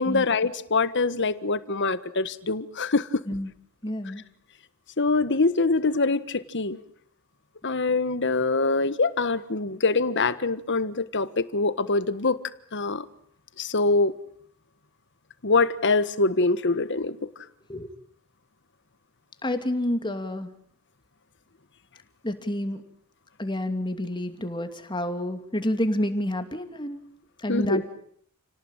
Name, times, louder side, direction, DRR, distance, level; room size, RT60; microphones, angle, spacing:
voice 1, 0.0-3.2 5.0-6.8 7.6-12.4 12.7-13.1 13.6-14.1 15.4-17.2 27.5-27.8, left 3 dB, 55° left, 14 dB, 1.4 m, -24 dB
voice 2, 3.8-4.2 17.7-17.9 19.4-20.6 22.2-22.8 23.4-27.0 27.4-27.9, left 1 dB, 20° left, 8 dB, 2.6 m, -29 dB
30.0 x 18.5 x 9.0 m, 0.65 s
head